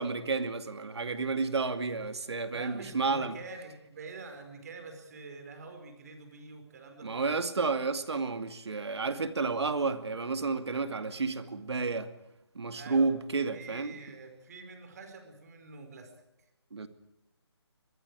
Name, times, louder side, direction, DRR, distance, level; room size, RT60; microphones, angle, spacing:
voice 1, 0.0-3.4 7.0-12.1 12.5-14.0 16.7-16.9, right 4 dB, 70° right, 9 dB, 2.5 m, -31 dB
voice 2, 2.5-7.3 12.7-13.2 13.5-16.1, right 3 dB, 35° right, 7 dB, 5.0 m, -46 dB
26.0 x 22.0 x 4.9 m, 0.94 s
hypercardioid pair, 165°, 14 cm